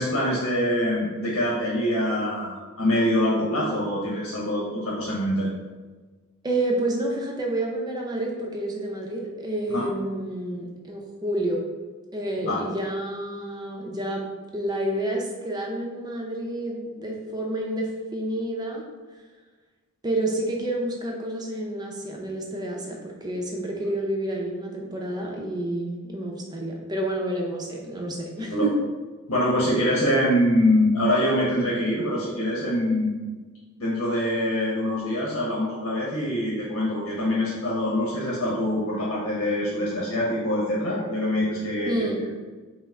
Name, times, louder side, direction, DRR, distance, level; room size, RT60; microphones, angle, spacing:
voice 1, 0.0-5.5 9.7-9.8 12.4-12.6 28.5-28.6 29.3-33.3 33.8-42.3, left 1 dB, 85° left, -5 dB, 0.9 m, -24 dB
voice 2, 6.4-11.6 12.1-14.2 14.5-18.8 20.0-28.7 41.9-42.2, right 1 dB, 20° right, 0 dB, 0.6 m, -29 dB
5.4 x 2.1 x 3.5 m, 1.3 s
head